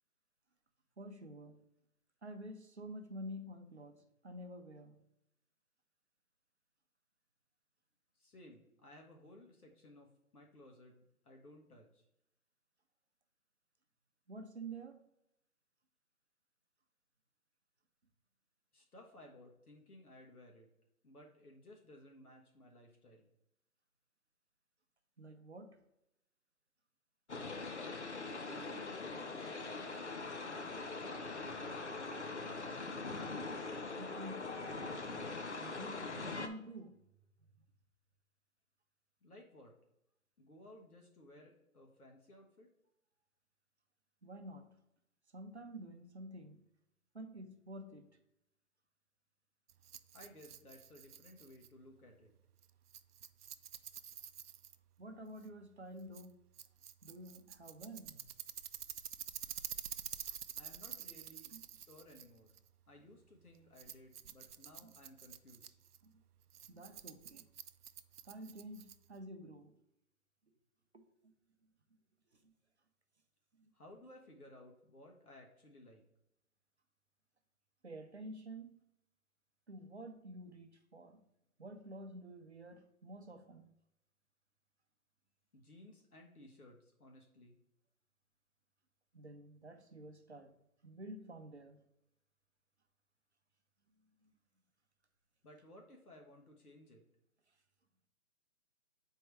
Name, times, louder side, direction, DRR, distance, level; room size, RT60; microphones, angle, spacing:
voice 1, 1.0-1.6 2.2-5.0 14.3-15.0 25.2-25.8 34.0-35.1 35.6-37.0 44.2-44.8 45.3-46.6 47.1-48.2 55.0-56.4 57.0-58.2 61.5-61.6 64.8-64.9 66.0-66.1 66.7-67.5 68.2-69.8 70.9-71.3 72.4-72.5 73.6-73.7 77.8-78.7 79.7-81.2 81.6-83.7 89.1-90.5 90.8-91.8 94.2-94.3, right 1 dB, 50° right, 0.7 m, -50 dB
voice 2, 8.2-12.1 18.7-20.7 21.0-23.3 28.6-32.4 39.2-39.7 40.4-42.7 50.1-52.3 60.6-62.5 62.9-65.7 73.7-76.0 85.5-87.6 95.4-97.0, left 1 dB, 80° left, 1.5 m, -58 dB
sound 1, 27.3-36.5, left 3 dB, 50° left, 0.5 m, -42 dB
Rattle, 49.7-69.3, right 9 dB, 85° right, 0.5 m, -50 dB
6.6 x 4.5 x 3.2 m
figure-of-eight pair, 175°, 44 cm